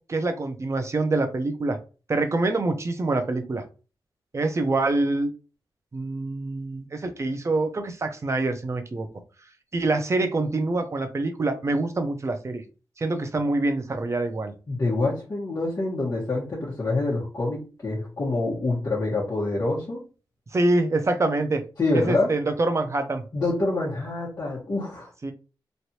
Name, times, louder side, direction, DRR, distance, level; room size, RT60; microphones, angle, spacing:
voice 1, 0.0-1.8 2.1-3.6 4.3-5.3 5.9-9.1 9.7-12.6 13.0-14.5 20.5-21.6 21.9-23.2 25.2-25.3, right 2 dB, 35° right, 7 dB, 0.6 m, -25 dB
voice 2, 14.7-20.1 21.8-22.3 23.3-25.1, left 2 dB, 40° left, -7 dB, 1.2 m, -26 dB
3.1 x 2.6 x 2.8 m, 0.34 s
wide cardioid pair, 100°, 8 cm